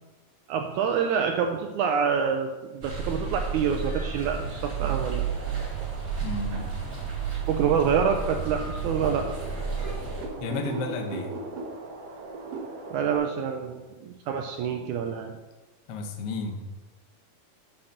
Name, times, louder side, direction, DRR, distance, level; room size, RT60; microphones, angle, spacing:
voice 1, 0.5-5.3 7.5-9.3 12.9-15.3, right 7 dB, 85° right, 4 dB, 1.7 m, -27 dB
sound 1, 2.8-10.3, right 6 dB, 30° right, 3.0 m, -32 dB
sound 2, 5.2-13.2, right 3 dB, 60° right, 1.6 m, -40 dB
voice 2, 6.2-6.7 7.7-7.8 10.4-11.3 15.9-16.6, left 3 dB, 80° left, 4 dB, 1.3 m, -32 dB
7.1 x 5.9 x 6.5 m, 1.1 s
omnidirectional pair, 4.2 m